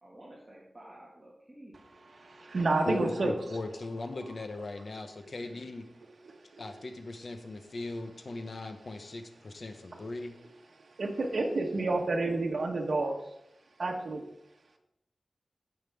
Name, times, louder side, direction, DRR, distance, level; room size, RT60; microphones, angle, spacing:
voice 1, 0.0-1.7 5.4-5.6, right 1 dB, 25° right, -5 dB, 1.9 m, -52 dB
voice 2, 2.0-3.3 6.2-6.6 9.9-10.0 11.0-13.1 13.8-14.2, right 2 dB, 70° right, 1 dB, 1.3 m, -30 dB
voice 3, 2.9-5.8 6.6-10.3, left 2 dB, 65° left, 6 dB, 1.1 m, -38 dB
16.0 x 5.9 x 3.5 m, 0.80 s
wide cardioid pair, 95°, 0 cm